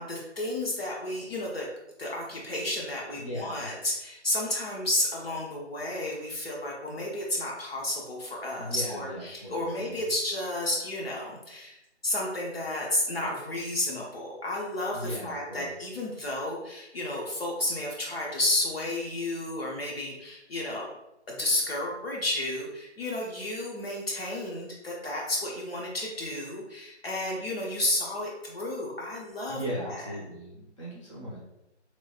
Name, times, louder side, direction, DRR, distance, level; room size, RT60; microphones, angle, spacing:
voice 1, 0.0-1.7 2.0-11.8 12.0-20.8 21.3-30.0, left 1 dB, 55° left, -3 dB, 0.8 m, -32 dB
voice 2, 3.1-3.6 8.6-10.0 14.9-15.8 29.5-31.4, equal, 25° left, -7 dB, 0.8 m, -37 dB
3.0 x 2.9 x 2.4 m, 0.90 s
figure-of-eight pair, 155°, 35 cm